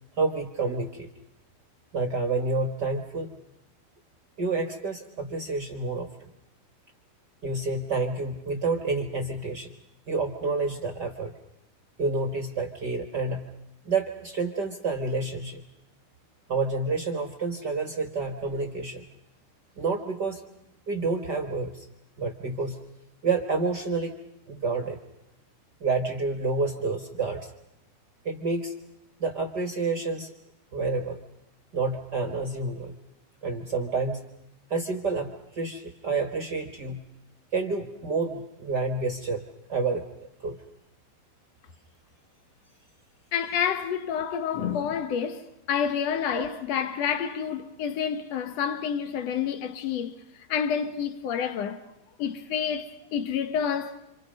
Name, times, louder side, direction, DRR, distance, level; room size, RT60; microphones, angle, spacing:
voice 1, 0.2-1.1 1.9-3.3 4.4-6.3 7.4-9.7 10.1-11.3 12.0-13.5 13.8-15.6 16.5-19.0 19.8-20.4 20.9-21.9 22.2-22.8 23.2-24.2 24.5-25.0 25.8-27.5 28.2-28.7 29.2-30.3 30.7-31.2 31.7-32.9 33.4-34.2 34.7-37.0 37.5-39.4 39.7-40.0 40.4-40.6 46.3-46.5, right 3 dB, 65° right, 1.0 m, -29 dB
voice 2, 43.3-50.2 50.5-51.8 52.2-54.0, left 7 dB, 75° left, 1.5 m, -29 dB
28.5 x 27.5 x 5.4 m
omnidirectional pair, 4.4 m